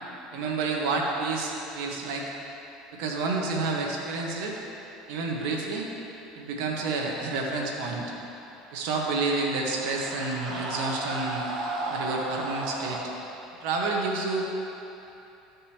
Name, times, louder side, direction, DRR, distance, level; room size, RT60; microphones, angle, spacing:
voice 1, 0.3-2.2 2.9-4.5 5.1-5.9 6.3-8.1 8.7-11.4 11.9-13.0 13.6-14.5, right 3 dB, 70° right, -1 dB, 1.3 m, -29 dB
sound 1, 8.6-13.1, right 2 dB, 50° right, 1.5 m, -35 dB
13.0 x 5.3 x 3.0 m, 2.9 s
supercardioid pair, 90°, 0 cm